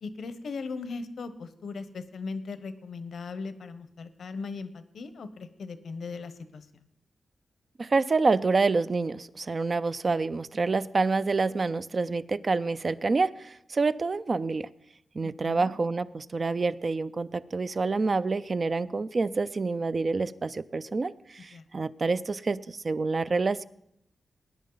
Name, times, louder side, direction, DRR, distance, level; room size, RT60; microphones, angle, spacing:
voice 1, 0.0-6.7 15.4-15.7 21.5-21.6, left 4 dB, 80° left, 0.9 m, -38 dB
voice 2, 7.8-14.7 15.1-23.6, right 3 dB, 45° right, 0.4 m, -27 dB
18.5 x 10.0 x 3.9 m
wide cardioid pair, 100°, 0 cm